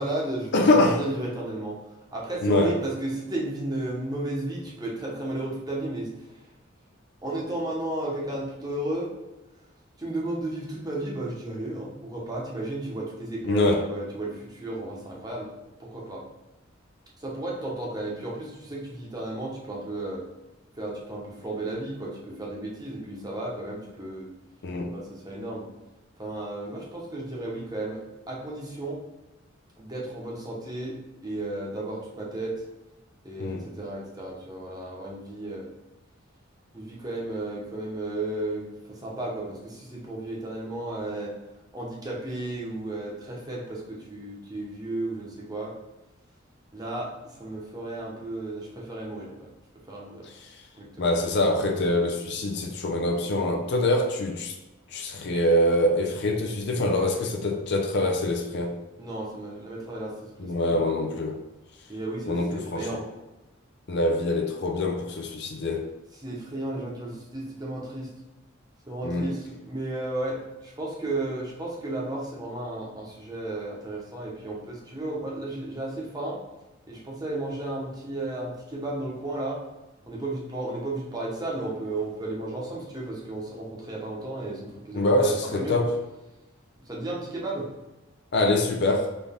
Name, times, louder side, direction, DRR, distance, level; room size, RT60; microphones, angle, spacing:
voice 1, 0.0-1.8 2.1-6.4 7.2-9.1 10.0-15.5 15.8-16.2 17.2-20.2 20.8-24.3 24.9-25.7 26.2-28.0 28.3-29.0 29.8-32.5 33.2-35.7 36.7-41.3 41.7-45.7 46.7-49.5 49.9-50.3 50.7-51.1 59.0-60.8 61.9-63.0 66.2-68.1 68.9-76.4 76.9-79.6 80.1-85.8 86.9-87.7, right 2 dB, 20° right, 1.0 m, -33 dB
voice 2, 0.5-1.0 2.4-2.7 13.4-13.8 24.6-24.9 33.4-33.6 51.0-54.5 54.9-58.7 60.4-61.4 62.3-63.0 63.9-65.9 69.0-69.3 84.9-85.9 88.3-89.1, left 1 dB, 60° left, 0.6 m, -24 dB
3.9 x 3.4 x 3.6 m
head